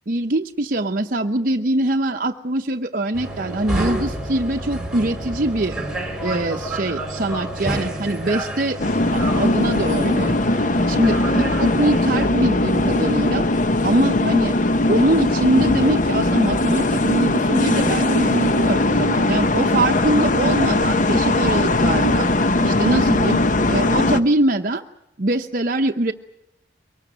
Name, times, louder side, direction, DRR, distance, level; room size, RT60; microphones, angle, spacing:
voice 1, 0.1-5.8 6.2-8.8 9.1-10.3 10.9-13.4 13.8-14.5 14.9-22.3 22.6-23.4 23.7-24.8 25.2-26.1, right 1 dB, 50° right, 4 dB, 0.8 m, -22 dB
sound 1, 3.1-12.3, right 1 dB, 5° right, 4.2 m, -29 dB
sound 2, 8.8-24.2, left 2 dB, 45° left, 0.9 m, -19 dB
23.5 x 20.0 x 9.1 m, 0.88 s
head